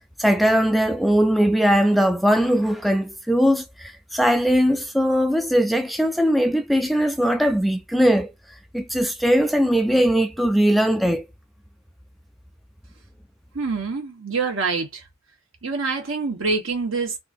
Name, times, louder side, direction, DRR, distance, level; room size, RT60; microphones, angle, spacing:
voice 1, 0.2-8.3 8.7-11.2, equal, ahead, 0.3 m, -20 dB
voice 2, 13.5-15.1 15.6-17.2, right 4 dB, 75° right, 1.3 m, -26 dB
3.4 x 2.6 x 2.6 m
head